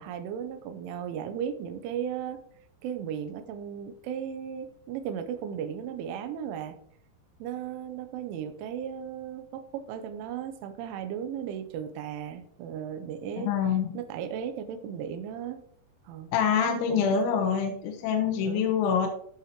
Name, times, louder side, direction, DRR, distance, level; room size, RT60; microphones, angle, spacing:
voice 1, 0.0-2.4 2.8-6.8 7.4-13.5 13.9-15.6 16.1-17.2 18.4-18.7, right 8 dB, 85° right, 9 dB, 3.0 m, -36 dB
voice 2, 13.4-13.9 16.3-19.1, left 7 dB, 75° left, 3 dB, 3.1 m, -25 dB
15.0 x 5.6 x 3.0 m, 0.65 s
omnidirectional pair, 5.9 m